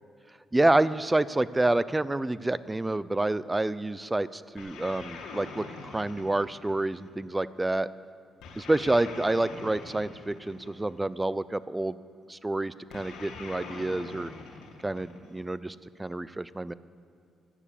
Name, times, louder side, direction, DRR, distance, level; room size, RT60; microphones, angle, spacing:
voice 1, 0.5-7.9 8.6-12.0 12.3-14.3 14.8-16.7, right 2 dB, 15° right, 17 dB, 0.5 m, -28 dB
sound 1, 4.6-7.2 8.4-11.0 12.9-15.5, left 4 dB, 85° left, 2.4 m, -43 dB
15.5 x 9.8 x 8.5 m, 2.5 s
cardioid pair, 90°, 0 cm